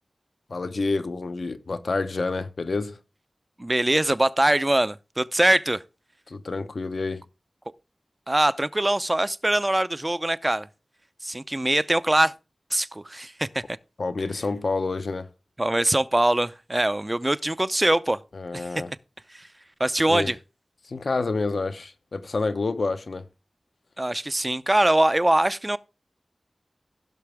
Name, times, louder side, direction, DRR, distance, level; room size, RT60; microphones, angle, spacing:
voice 1, 0.5-3.0 6.3-7.2 14.0-15.3 18.3-18.9 20.1-20.3 20.8-23.3, left 3 dB, 75° left, 0.8 m, -28 dB
voice 2, 3.6-5.8 8.3-10.7 11.2-12.3 12.7-13.8 15.6-18.2 18.5-18.7 19.3-19.5 19.8-20.4 24.0-25.8, right 1 dB, 25° right, 0.5 m, -23 dB
16.5 x 5.9 x 3.4 m
wide cardioid pair, 65°, 0 cm